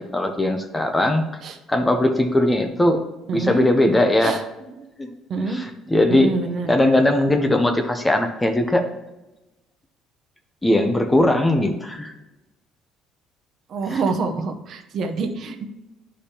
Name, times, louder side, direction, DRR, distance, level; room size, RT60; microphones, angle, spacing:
voice 1, 0.0-1.2 1.7-3.0 3.3-4.5 5.0-5.1 5.5-6.3 6.7-8.9 10.6-12.1 13.9-14.0, left 1 dB, 10° left, 6 dB, 0.5 m, -19 dB
voice 2, 3.3-3.6 4.2-4.7 5.3-5.6 6.1-6.7 13.7-15.6, right 4 dB, 45° right, 6 dB, 0.7 m, -26 dB
11.5 x 5.1 x 2.8 m, 1.0 s
cardioid pair, 160°, 0 cm